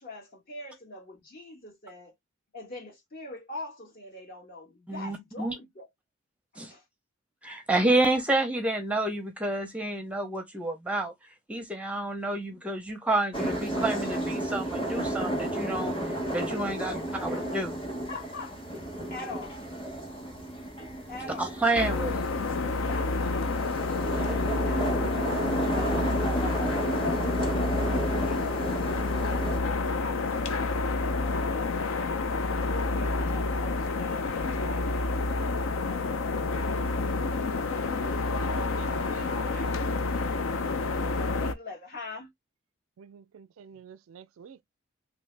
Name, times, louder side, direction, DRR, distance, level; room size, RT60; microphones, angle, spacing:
voice 1, 0.0-2.1 2.5-5.9 6.5-6.8 16.7-17.3 18.1-18.6 19.1-19.6 21.1-21.6 22.9-23.8 24.4-25.4 25.7-31.7 32.6-34.9 35.9-37.0 38.0-39.5 40.9-42.3, left 2 dB, 45° left, 1.5 m, -43 dB
voice 2, 4.9-5.5 6.6-6.7 7.4-11.1 11.5-17.8 21.4-22.2, right 2 dB, 5° right, 0.6 m, -29 dB
sound 1, 13.3-29.6, right 1 dB, 25° left, 1.3 m, -32 dB
sound 2, 21.7-41.5, left 3 dB, 75° left, 0.4 m, -29 dB
voice 3, 36.6-37.3 37.7-37.8 39.1-39.7 43.0-44.6, right 7 dB, 80° right, 0.3 m, -50 dB
3.1 x 2.6 x 3.2 m
head